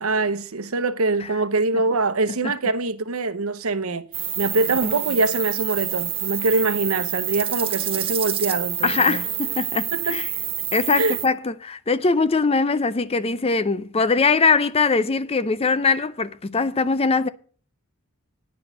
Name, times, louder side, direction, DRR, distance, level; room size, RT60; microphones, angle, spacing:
voice 1, 0.0-4.1 4.4-9.2 9.9-10.2 10.9-11.2, right 3 dB, 80° right, 0.9 m, -24 dB
sound 1, 4.1-11.3, right 10 dB, 25° right, 1.1 m, -28 dB
voice 2, 8.8-10.3 10.7-17.3, left 4 dB, 25° left, 0.5 m, -21 dB
9.5 x 6.2 x 7.6 m
head